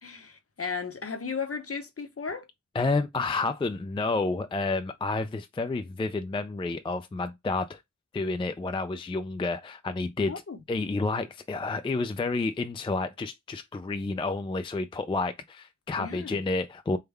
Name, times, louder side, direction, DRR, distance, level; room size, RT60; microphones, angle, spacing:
voice 1, 0.0-2.5 10.3-10.6 16.0-16.4, left 5 dB, 45° left, 0.8 m, -35 dB
voice 2, 2.7-7.8 8.1-10.3 10.7-17.0, left 3 dB, 15° left, 0.3 m, -30 dB
3.5 x 2.2 x 3.3 m
cardioid pair, 45°, 31 cm